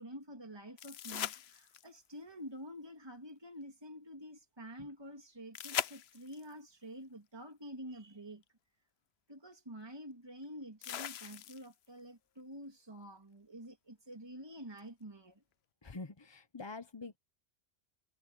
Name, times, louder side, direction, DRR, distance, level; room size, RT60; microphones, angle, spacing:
voice 1, 0.0-8.4 9.3-15.4, equal, 20° right, 2.7 m, -48 dB
sound 1, 0.8-2.1 5.5-6.5 8.4-8.5 10.8-11.9 14.8-14.9, left 10 dB, 70° left, 0.9 m, -40 dB
voice 2, 15.8-17.2, left 3 dB, 25° left, 0.8 m, -45 dB
omnidirectional pair, 1.1 m